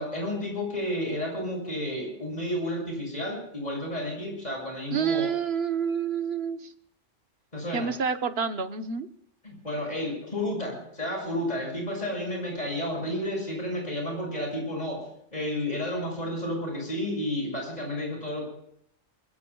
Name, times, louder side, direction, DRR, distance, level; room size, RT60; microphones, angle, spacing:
voice 1, 0.0-5.3 7.5-7.9 9.4-15.1 15.3-18.4, left 1 dB, 30° left, 0 dB, 6.9 m, -31 dB
voice 2, 4.9-6.7 7.7-9.1, right 6 dB, 55° right, 9 dB, 1.2 m, -28 dB
24.0 x 20.5 x 2.3 m, 0.70 s
omnidirectional pair, 1.3 m